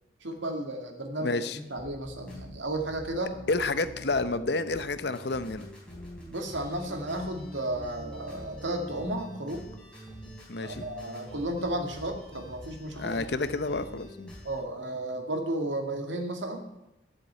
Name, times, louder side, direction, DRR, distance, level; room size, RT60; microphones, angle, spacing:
voice 1, 0.2-3.4 6.3-9.7 10.6-13.3 14.4-16.6, right 1 dB, 80° right, 4 dB, 2.1 m, -33 dB
voice 2, 1.2-1.6 3.5-5.7 10.5-10.8 13.0-14.4, left 3 dB, 60° left, 12 dB, 0.8 m, -30 dB
sound 1, 1.8-14.6, equal, 5° left, 3.9 m, -46 dB
11.0 x 7.6 x 8.6 m, 0.92 s
head